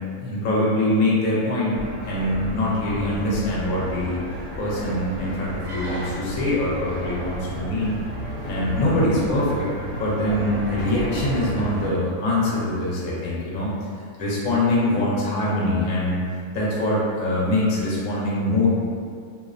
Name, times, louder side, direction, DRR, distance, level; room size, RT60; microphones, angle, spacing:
voice 1, 0.2-1.8 2.0-4.2 4.6-7.9 8.4-9.7 10.0-13.7 14.2-16.2 16.5-18.7, left 1 dB, 70° left, -6 dB, 0.9 m, -23 dB
sound 1, 1.7-11.9, equal, 60° right, 0.8 m, -32 dB
2.6 x 2.0 x 2.4 m, 2.2 s
omnidirectional pair, 1.6 m